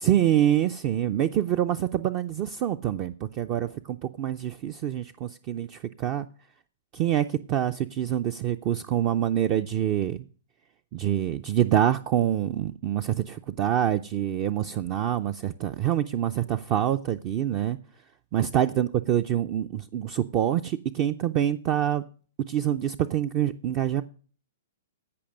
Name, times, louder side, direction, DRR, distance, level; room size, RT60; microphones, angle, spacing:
voice 1, 0.0-6.3 6.9-10.2 10.9-17.8 18.3-22.0 22.5-24.0, right 11 dB, 35° right, 0.5 m, -26 dB
15.5 x 5.3 x 6.3 m
hypercardioid pair, 125°, 0 cm